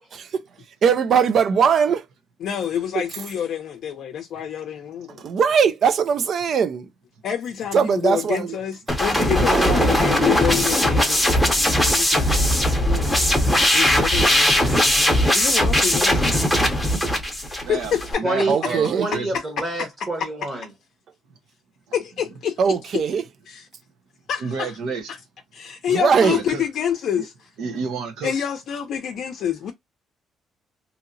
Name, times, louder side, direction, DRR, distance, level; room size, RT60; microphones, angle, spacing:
voice 1, 0.1-0.4 0.8-2.0 5.2-6.9 7.7-8.5 9.4-10.3 14.7-14.8 18.5-19.1 22.6-23.2 25.9-26.4, right 6 dB, 45° right, 0.4 m, -20 dB
voice 2, 2.4-5.2 7.2-13.3 13.7-16.5 17.5-18.3 18.6-18.7 19.3-19.4 21.9-23.0 23.5-23.6 24.3-24.7 25.1-25.2 25.5-27.5 28.2-29.7, left 9 dB, 60° left, 0.5 m, -28 dB
sound 1, 8.9-18.1, equal, ahead, 0.7 m, -19 dB
voice 3, 17.6-19.3 24.4-25.1 26.1-26.6 27.1-27.2 27.6-28.3, right 5 dB, 85° right, 0.9 m, -30 dB
voice 4, 18.2-20.7, right 2 dB, 25° right, 0.9 m, -27 dB
2.8 x 2.8 x 2.5 m
cardioid pair, 160°, 0 cm